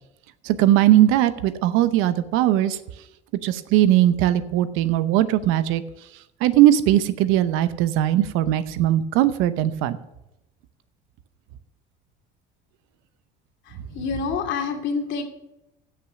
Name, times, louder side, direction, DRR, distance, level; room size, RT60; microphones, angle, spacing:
voice 1, 0.4-2.8 3.4-5.8 6.4-10.0, right 13 dB, 75° right, 13 dB, 0.8 m, -19 dB
voice 2, 13.9-15.2, left 5 dB, 65° left, 4 dB, 2.4 m, -26 dB
16.0 x 5.8 x 6.2 m, 0.92 s
supercardioid pair, 80°, 21 cm